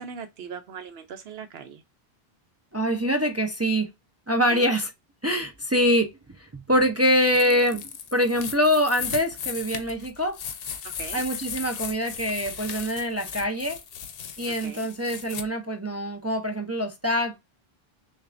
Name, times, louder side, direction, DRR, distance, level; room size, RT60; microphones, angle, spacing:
voice 1, 0.0-1.8 4.5-4.7 10.8-11.2 14.5-14.9, right 6 dB, 75° right, 0.8 m, -39 dB
voice 2, 2.7-3.9 4.3-4.9 5.2-6.1 6.4-10.4 11.1-13.8 14.4-17.4, equal, 25° right, 0.3 m, -24 dB
sound 1, 7.2-15.4, left 7 dB, 70° left, 0.8 m, -36 dB
6.4 x 2.3 x 2.4 m
omnidirectional pair, 1.0 m